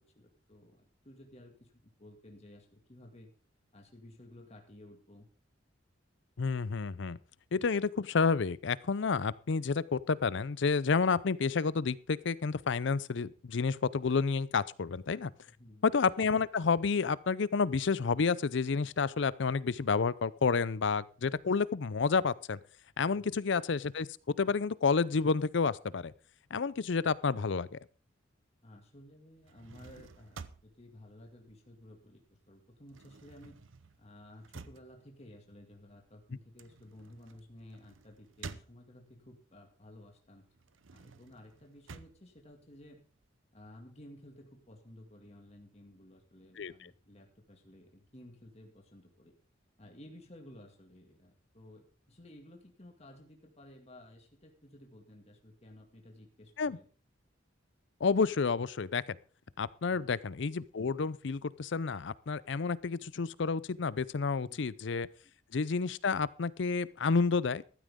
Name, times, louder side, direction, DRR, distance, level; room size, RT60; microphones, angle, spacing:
voice 1, 0.2-1.7 2.0-3.3 3.7-5.3 15.6-15.9 23.1-23.3 28.6-33.6 34.0-40.4 40.9-43.0 43.5-49.3 49.8-56.9 59.9-60.2 64.3-64.8, left 1 dB, 35° left, 2 dB, 2.2 m, -54 dB
voice 2, 6.4-7.2 7.5-15.3 15.8-22.6 23.0-24.1 24.4-26.1 26.5-27.8 46.6-46.7 56.6-56.8 58.0-59.2 59.6-65.1 65.5-67.6, left 5 dB, 65° left, 19 dB, 0.5 m, -30 dB
sound 1, 29.3-32.2 32.5-39.3 39.7-43.3, right 4 dB, 80° right, 0.8 m, -51 dB
14.5 x 12.5 x 3.7 m, 0.39 s
head